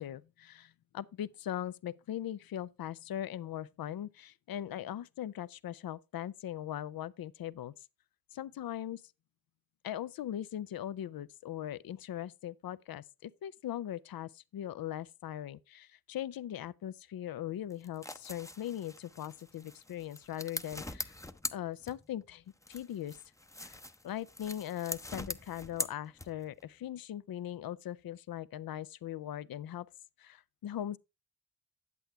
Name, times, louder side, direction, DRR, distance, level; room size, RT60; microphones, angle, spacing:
voice 1, 0.0-7.7 8.3-9.0 9.8-21.1 21.5-23.2 23.6-23.8 24.0-29.9 30.2-31.0, left 11 dB, 70° left, 0.5 m, -40 dB
sound 1, 17.7-22.3 22.6-26.6, left 1 dB, 10° left, 0.6 m, -43 dB
8.4 x 7.9 x 3.4 m
cardioid pair, 45°, 37 cm